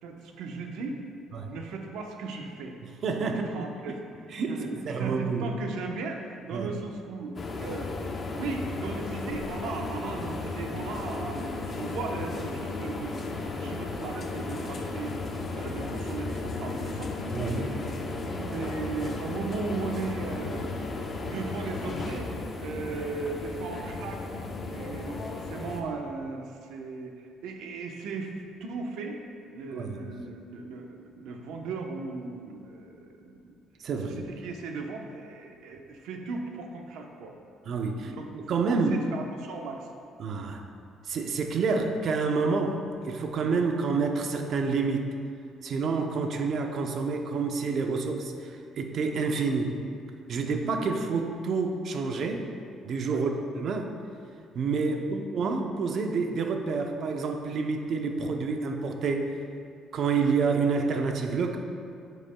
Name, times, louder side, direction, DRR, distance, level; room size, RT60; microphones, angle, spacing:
voice 1, 0.0-1.0 1.5-2.8 3.2-4.7 5.0-7.4 7.6-7.9 8.3-15.2 15.5-17.1 17.5-20.7 21.2-24.2 24.7-28.3 28.6-29.2 29.5-33.5 34.0-37.4 38.1-38.3 38.7-39.9 53.1-53.2 54.9-55.0, right 4 dB, 80° right, 2 dB, 0.9 m, -37 dB
voice 2, 3.0-3.7 4.3-5.5 6.5-6.7 17.3-17.7 29.7-30.1 33.8-34.3 37.7-39.1 40.2-40.6 41.1-45.1 45.6-49.8 50.3-52.4 52.8-53.9 54.5-59.4 59.9-61.6, right 4 dB, 45° right, 4 dB, 0.6 m, -28 dB
sound 1, 7.4-25.8, left 3 dB, 30° left, 0.7 m, -34 dB
9.9 x 8.0 x 2.3 m, 2.4 s
cardioid pair, 155°, 0 cm